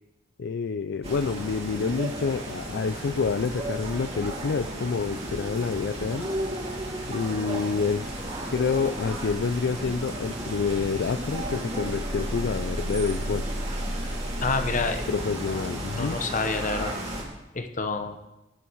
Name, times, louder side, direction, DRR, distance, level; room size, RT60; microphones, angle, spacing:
voice 1, 0.4-6.3 7.1-13.5 15.1-16.2, left 5 dB, 65° left, 10 dB, 0.4 m, -28 dB
sound 1, 1.0-17.2, right 1 dB, 35° right, 2.7 m, -33 dB
voice 2, 14.4-15.0 15.5-15.6 16.0-17.0 17.5-18.2, left 4 dB, 45° left, 8 dB, 1.0 m, -28 dB
18.0 x 7.1 x 4.6 m, 0.94 s
head